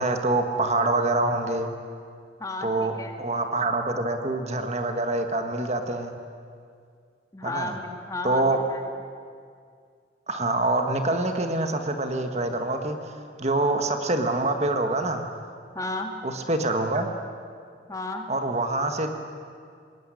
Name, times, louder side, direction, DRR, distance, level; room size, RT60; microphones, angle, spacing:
voice 1, 0.0-1.7 2.6-6.1 7.4-7.7 8.2-8.6 10.3-15.3 16.2-17.1 18.3-19.1, right 2 dB, 35° right, 5 dB, 1.7 m, -25 dB
voice 2, 2.4-3.1 7.3-8.8 15.7-16.1 17.9-18.3, left 2 dB, 20° left, 4 dB, 2.0 m, -33 dB
22.0 x 19.5 x 10.0 m, 2.2 s
head